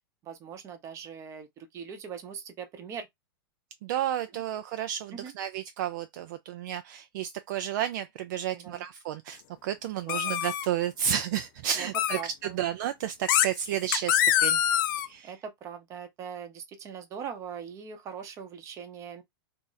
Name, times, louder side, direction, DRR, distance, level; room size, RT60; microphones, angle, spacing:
voice 1, 0.2-3.1 4.3-4.4 5.1-5.3 8.5-8.9 10.1-10.4 11.7-12.6 15.2-19.2, right 7 dB, 25° right, 0.8 m, -41 dB
voice 2, 3.8-14.6 15.1-15.3, right 10 dB, 50° right, 0.4 m, -32 dB
sound 1, 10.1-10.7 11.9-12.2 13.3-13.5 13.9-15.1, left 10 dB, 55° left, 0.5 m, -24 dB
2.7 x 2.5 x 3.9 m
supercardioid pair, 155°, 13 cm